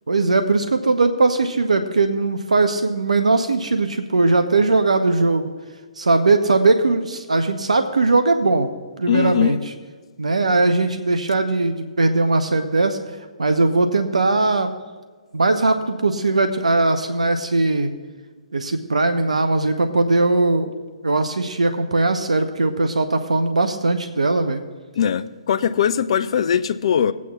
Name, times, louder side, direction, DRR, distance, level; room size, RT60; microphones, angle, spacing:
voice 1, 0.1-5.5 6.0-8.7 9.0-9.6 10.2-13.0 13.4-14.7 15.3-17.9 18.5-20.7 21.0-24.6, right 3 dB, 85° right, 0.6 m, -19 dB
voice 2, 9.1-9.6 25.0-27.1, left 8 dB, 60° left, 0.4 m, -20 dB
21.0 x 8.3 x 2.3 m
figure-of-eight pair, 130°, 3 cm